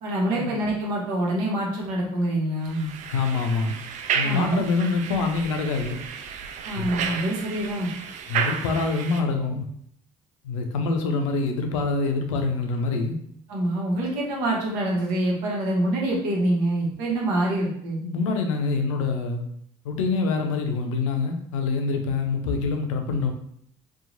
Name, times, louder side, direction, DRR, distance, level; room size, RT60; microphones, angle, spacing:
voice 1, 0.0-2.9 4.2-4.6 6.6-7.9 13.5-18.0, right 1 dB, 65° right, -3 dB, 0.9 m, -25 dB
sound 1, 2.7-9.2, right 7 dB, 50° right, 0.4 m, -32 dB
voice 2, 3.1-3.7 4.1-6.0 6.8-6.9 8.3-9.7 10.4-13.2 18.0-19.4 19.8-23.3, left 4 dB, 80° left, 5 dB, 0.4 m, -25 dB
2.8 x 2.2 x 2.5 m, 0.67 s
hypercardioid pair, 60°, 16 cm